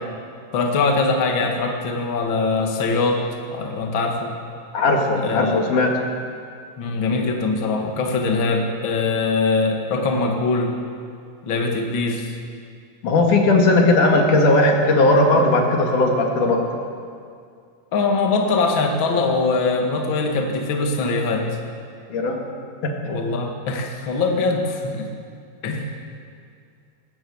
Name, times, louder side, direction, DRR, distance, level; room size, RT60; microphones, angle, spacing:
voice 1, 0.5-3.2 3.5-4.3 5.2-5.6 6.8-10.7 11.4-12.4 17.9-21.5 23.0-25.1 25.6-25.9, left 3 dB, 45° left, 2 dB, 2.3 m, -22 dB
voice 2, 4.7-5.9 13.0-16.6 22.1-22.4 22.8-22.9, left 2 dB, 75° left, 1 dB, 3.9 m, -17 dB
20.5 x 18.0 x 7.2 m, 2.3 s
omnidirectional pair, 3.6 m